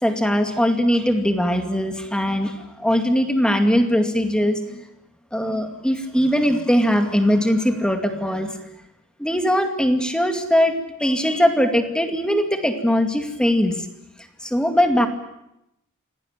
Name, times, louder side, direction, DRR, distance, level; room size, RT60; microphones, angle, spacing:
voice 1, 0.0-4.8 5.3-8.6 9.2-13.8 14.4-15.1, equal, 5° left, 6 dB, 2.3 m, -20 dB
26.5 x 18.5 x 9.1 m, 0.87 s
head